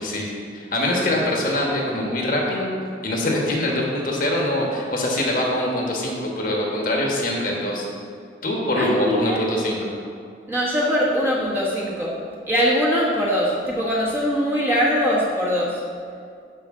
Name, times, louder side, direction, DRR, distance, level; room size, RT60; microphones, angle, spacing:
voice 1, 0.0-2.7 3.0-7.9 8.4-9.9, left 1 dB, 50° left, -2 dB, 1.3 m, -23 dB
voice 2, 8.8-9.4 10.5-12.1 12.5-15.8, equal, 10° right, -5 dB, 1.2 m, -22 dB
12.0 x 5.0 x 3.7 m, 2.3 s
head